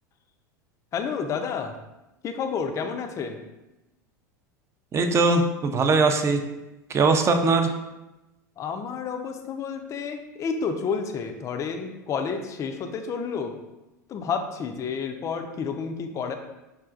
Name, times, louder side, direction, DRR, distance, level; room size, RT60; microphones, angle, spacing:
voice 1, 0.9-1.7 2.2-3.4 8.6-13.6 14.1-16.4, left 6 dB, 30° left, 6 dB, 0.4 m, -30 dB
voice 2, 4.9-6.4 6.9-7.7, right 3 dB, 25° right, 6 dB, 0.5 m, -21 dB
6.3 x 2.4 x 2.4 m, 1.0 s
hypercardioid pair, 85°, 10 cm